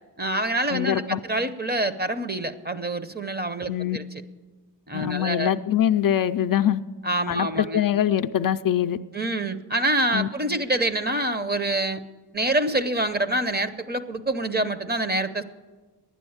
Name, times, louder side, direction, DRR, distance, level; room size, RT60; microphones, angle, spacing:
voice 1, 0.2-4.0 4.9-5.5 7.0-7.8 9.1-12.0 12.3-15.4, right 1 dB, 25° right, 11 dB, 0.7 m, -26 dB
voice 2, 0.7-1.2 3.7-4.0 4.9-6.8 7.3-9.0 10.1-10.3, left 10 dB, 55° left, 10 dB, 0.5 m, -23 dB
11.5 x 9.7 x 8.7 m, 1.3 s
wide cardioid pair, 90°, 41 cm